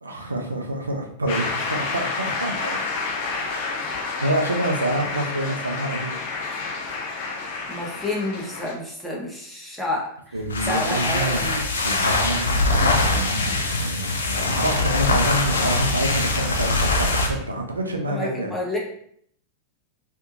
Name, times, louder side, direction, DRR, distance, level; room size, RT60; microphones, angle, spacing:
voice 1, 0.0-2.8 3.4-3.7 3.9-6.2 10.3-11.5 11.8-18.5, right 1 dB, 80° right, 3 dB, 0.5 m, -27 dB
Shout / Cheering / Applause, 1.3-8.7, left 4 dB, 55° left, 0.9 m, -29 dB
voice 2, 7.7-11.6 15.6-15.7 18.1-18.8, left 2 dB, 5° left, -3 dB, 0.8 m, -29 dB
sound 1, 10.4-17.4, left 2 dB, 70° left, 0.5 m, -22 dB
2.6 x 2.6 x 2.5 m, 0.65 s
figure-of-eight pair, 90°, 0 cm